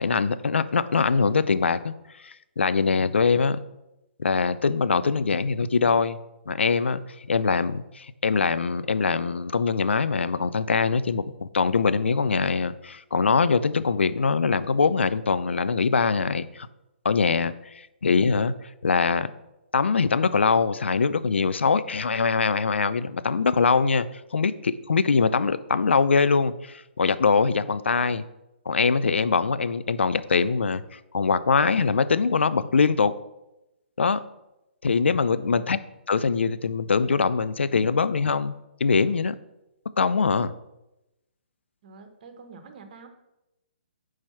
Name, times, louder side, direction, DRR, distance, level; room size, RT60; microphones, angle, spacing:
voice 1, 0.0-1.9 2.2-3.6 4.2-6.2 6.5-7.0 7.3-16.7 17.0-18.5 18.8-19.3 19.7-24.1 24.3-28.2 28.7-33.1 34.0-34.2 34.8-35.8 36.1-38.5 38.8-39.4 40.0-40.5, left 5 dB, 80° left, 15 dB, 0.4 m, -23 dB
voice 2, 35.3-35.6 41.8-43.1, right 4 dB, 45° right, 7 dB, 0.9 m, -46 dB
4.8 x 4.4 x 5.6 m, 0.93 s
figure-of-eight pair, 135°, 6 cm